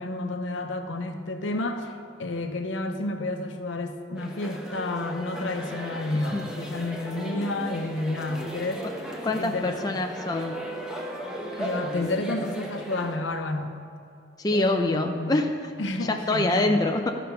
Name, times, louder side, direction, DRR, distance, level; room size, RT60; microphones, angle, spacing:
voice 1, 0.0-8.9 9.3-10.0 11.5-13.8 14.5-15.4 15.8-16.8, left 2 dB, 75° left, 6 dB, 0.8 m, -30 dB
sound 1, 4.2-13.2, equal, 5° right, 0.9 m, -36 dB
voice 2, 9.2-10.5 14.4-15.7 16.0-17.2, left 2 dB, 20° left, 3 dB, 0.4 m, -25 dB
13.0 x 5.0 x 5.7 m, 2.5 s
head